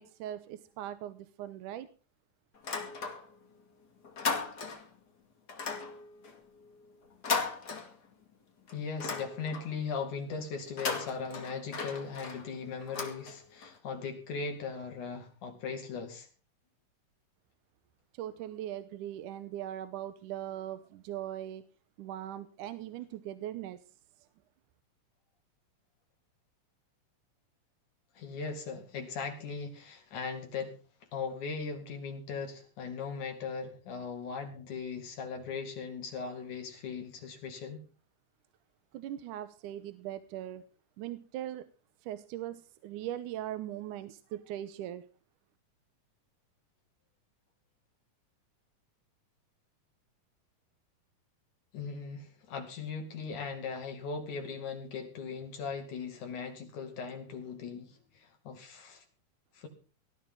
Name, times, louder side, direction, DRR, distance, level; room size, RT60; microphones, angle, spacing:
voice 1, 0.0-1.9 18.2-21.6 22.0-23.8 38.9-40.6 41.0-41.7 42.0-45.0, right 12 dB, 75° right, 12 dB, 2.4 m, -40 dB
sound 1, 2.5-3.5 3.8-5.0 5.5-8.3 8.7-9.8 10.6-13.7, left 5 dB, 35° left, 2.5 m, -37 dB
voice 2, 8.7-16.3 28.2-30.8 31.1-37.9 51.7-59.0 59.5-59.7, left 5 dB, 70° left, 4 dB, 3.8 m, -39 dB
18.5 x 14.0 x 3.8 m, 0.36 s
omnidirectional pair, 3.7 m